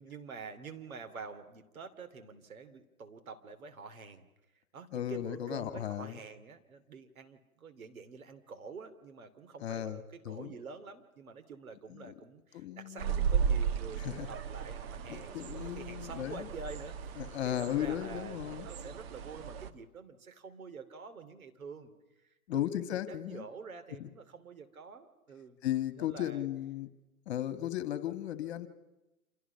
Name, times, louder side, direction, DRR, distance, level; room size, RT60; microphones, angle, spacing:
voice 1, 0.0-4.3 4.7-21.9 22.2-25.6 26.0-26.4, right 5 dB, 70° right, 7 dB, 3.0 m, -47 dB
voice 2, 4.9-6.2 9.6-10.5 11.9-12.1 12.5-13.3 14.0-14.3 15.1-16.5 17.2-18.7 22.5-23.4 24.0-24.1 25.6-26.9 27.3-28.7, left 12 dB, 45° left, 11 dB, 2.0 m, -36 dB
sound 1, 13.0-19.7, right 7 dB, 45° right, 1.6 m, -35 dB
29.0 x 27.5 x 5.8 m, 1.0 s
figure-of-eight pair, 125°, 43 cm